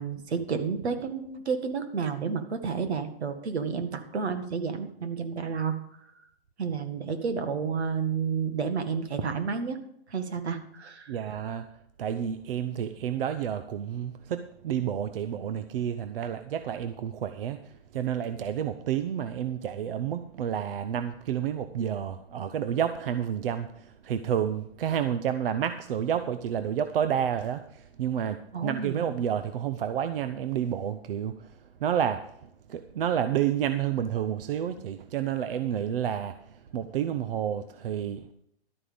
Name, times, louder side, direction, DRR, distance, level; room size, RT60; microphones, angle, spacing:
voice 1, 0.0-5.8 6.6-9.8 10.1-11.2 28.5-29.1, right 5 dB, 80° right, 8 dB, 2.0 m, -30 dB
voice 2, 11.1-11.7 12.0-38.3, right 9 dB, 60° right, 10 dB, 0.8 m, -30 dB
12.0 x 9.0 x 5.2 m, 0.70 s
hypercardioid pair, 150°, 32 cm